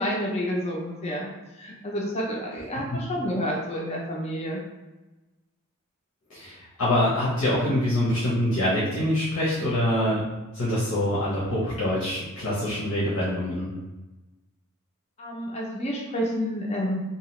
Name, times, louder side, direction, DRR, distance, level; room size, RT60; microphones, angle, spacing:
voice 1, 0.0-1.3 1.6-4.6 15.2-17.0, equal, 30° left, -2 dB, 0.4 m, -29 dB
voice 2, 6.3-10.2 10.5-13.7, left 1 dB, 80° left, -8 dB, 0.8 m, -25 dB
2.8 x 2.3 x 3.0 m, 1.1 s
head